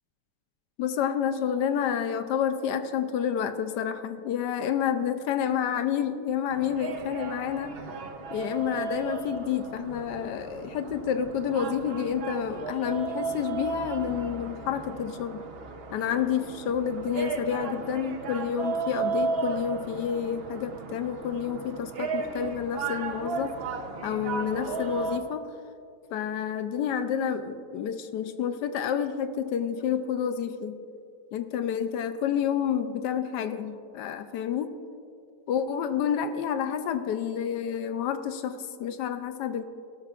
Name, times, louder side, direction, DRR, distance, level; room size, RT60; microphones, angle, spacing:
voice 1, 0.8-7.8 8.3-15.4 15.9-23.6 24.0-25.4 26.1-30.8 31.3-34.7 35.5-39.6, left 8 dB, 80° left, 10 dB, 1.2 m, -29 dB
sound 1, 6.5-25.2, right 4 dB, 50° right, 0.8 m, -35 dB
16.0 x 12.5 x 2.4 m, 2.4 s
omnidirectional pair, 1.8 m